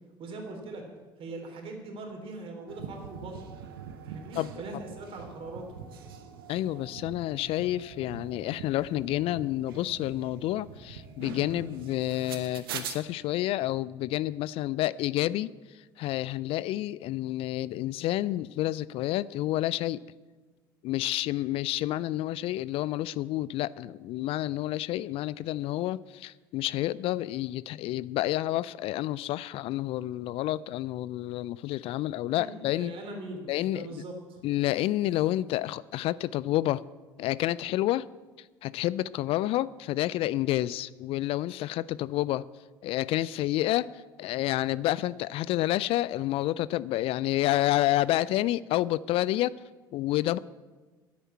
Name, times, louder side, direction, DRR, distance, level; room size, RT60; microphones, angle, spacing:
voice 1, 0.2-0.8 1.2-3.5 4.0-5.6 32.3-33.5 33.7-34.4, right 2 dB, 50° right, 3 dB, 3.2 m, -41 dB
sound 1, 2.7-13.0, right 7 dB, 75° right, 1.0 m, -43 dB
voice 2, 6.5-20.0 20.8-33.0 33.5-34.0 34.4-36.8 37.2-38.1 38.4-42.4 42.8-49.6 49.9-50.4, left 15 dB, 50° left, 19 dB, 0.4 m, -29 dB
10.0 x 8.8 x 8.4 m, 1.3 s
figure-of-eight pair, 60°, 12 cm